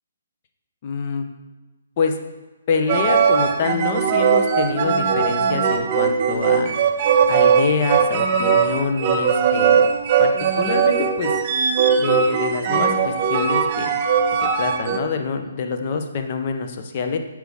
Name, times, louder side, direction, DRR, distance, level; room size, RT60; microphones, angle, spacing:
voice 1, 0.8-1.2 2.0-2.2 2.7-6.8 7.3-9.8 10.2-11.4 12.0-14.0 14.4-17.2, left 5 dB, 40° left, 6 dB, 0.7 m, -25 dB
sound 1, 2.9-15.0, right 6 dB, 35° right, 0.5 m, -19 dB
8.0 x 4.7 x 3.5 m, 1.2 s
hypercardioid pair, 150°, 0 cm